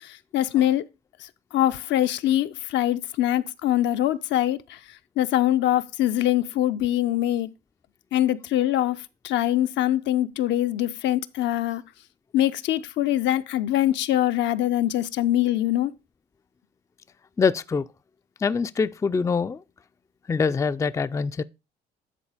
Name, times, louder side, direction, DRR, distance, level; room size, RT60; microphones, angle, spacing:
voice 1, 0.3-0.8 1.5-4.6 5.2-7.5 8.1-9.0 9.2-11.8 12.3-15.9, left 13 dB, 65° left, 0.6 m, -23 dB
voice 2, 17.4-17.9 18.4-19.6 20.3-21.4, left 5 dB, 15° left, 0.4 m, -24 dB
10.0 x 3.9 x 4.9 m
supercardioid pair, 80°, 20 cm